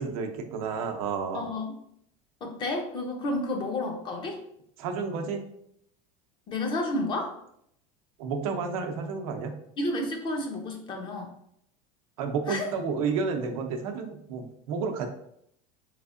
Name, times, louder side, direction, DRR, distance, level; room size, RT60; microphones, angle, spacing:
voice 1, 0.0-1.4 4.8-5.4 8.2-9.5 12.2-15.1, right 5 dB, 90° right, 4 dB, 0.6 m, -31 dB
voice 2, 1.3-1.7 2.4-4.4 6.5-7.3 9.8-11.3 12.5-12.7, left 2 dB, 25° left, 3 dB, 0.5 m, -31 dB
3.4 x 3.1 x 2.5 m, 0.72 s
supercardioid pair, 155°, 18 cm